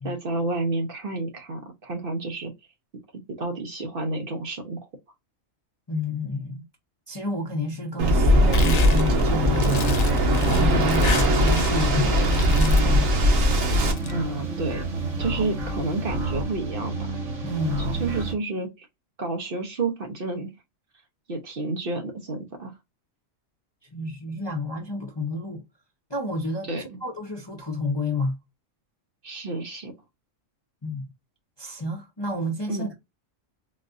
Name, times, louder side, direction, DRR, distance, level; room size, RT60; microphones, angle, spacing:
voice 1, 0.0-2.5 3.4-4.8 14.1-14.8 15.2-17.1 17.8-18.9 19.2-20.5 21.3-22.7 26.7-27.0 29.2-29.9 32.7-32.9, right 2 dB, 50° right, 0.9 m, -30 dB
voice 2, 5.9-6.6 7.1-10.0 10.4-13.2 17.4-18.0 23.9-25.6 26.1-26.7 27.0-28.3 30.8-31.0 31.6-32.9, left 2 dB, 25° left, 0.6 m, -30 dB
Waves surf, 8.0-13.9, equal, 85° right, 1.4 m, -20 dB
sound 1, 8.5-11.9 12.2-13.0 13.7-14.1, left 7 dB, 80° left, 0.3 m, -34 dB
sound 2, 9.2-18.3, right 2 dB, 70° right, 1.5 m, -30 dB
4.0 x 2.4 x 2.4 m
omnidirectional pair, 1.3 m